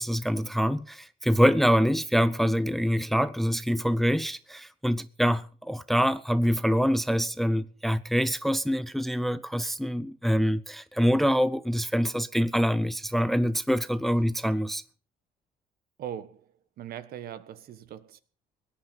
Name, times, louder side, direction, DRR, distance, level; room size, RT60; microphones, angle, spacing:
voice 1, 0.0-14.8, equal, ahead, 0.6 m, -25 dB
voice 2, 16.0-16.5 16.8-18.2, right 10 dB, 65° right, 1.4 m, -40 dB
17.5 x 10.5 x 5.6 m
cardioid pair, 110°, 17 cm